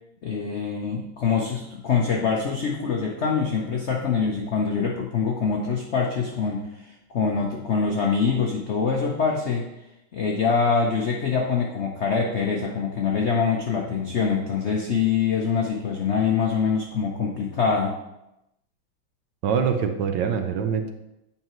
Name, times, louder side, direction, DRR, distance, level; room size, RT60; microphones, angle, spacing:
voice 1, 0.2-9.6 10.1-18.0, left 5 dB, 70° left, 0 dB, 0.6 m, -24 dB
voice 2, 19.4-20.9, right 7 dB, 70° right, 6 dB, 1.3 m, -24 dB
8.8 x 5.6 x 3.0 m, 0.89 s
omnidirectional pair, 2.2 m